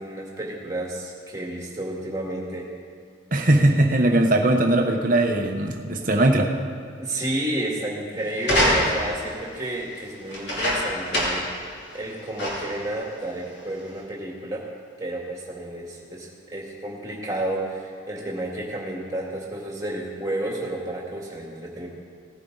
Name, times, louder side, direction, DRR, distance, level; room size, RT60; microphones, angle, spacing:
voice 1, 0.0-2.7 7.0-11.4 11.9-14.6 15.0-21.9, right 1 dB, 15° right, -3 dB, 2.2 m, -31 dB
voice 2, 3.3-6.5, right 1 dB, 40° right, 3 dB, 1.0 m, -20 dB
sound 1, 8.4-9.2 10.3-11.5 11.9-12.0 12.4-12.8 13.6-13.7, equal, 60° left, 2.9 m, -24 dB
17.5 x 10.0 x 4.0 m, 2.2 s
head